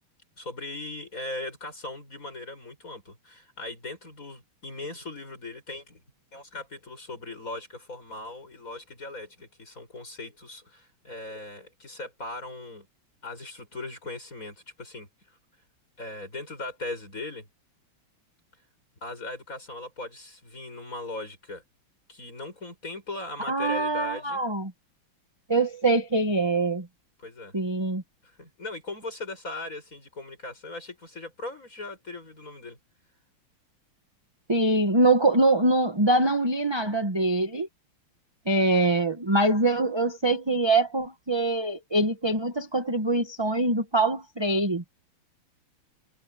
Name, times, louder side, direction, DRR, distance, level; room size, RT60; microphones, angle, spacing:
voice 1, 0.4-6.0 6.3-12.9 13.2-15.1 16.0-17.5 19.0-21.6 22.1-24.4 27.2-27.5 28.2-32.8, left 2 dB, 35° left, 8.0 m, -39 dB
voice 2, 23.5-24.7 25.5-26.9 27.5-28.0 34.5-37.7 38.5-44.8, right 2 dB, 15° right, 1.1 m, -24 dB
omnidirectional pair, 2.4 m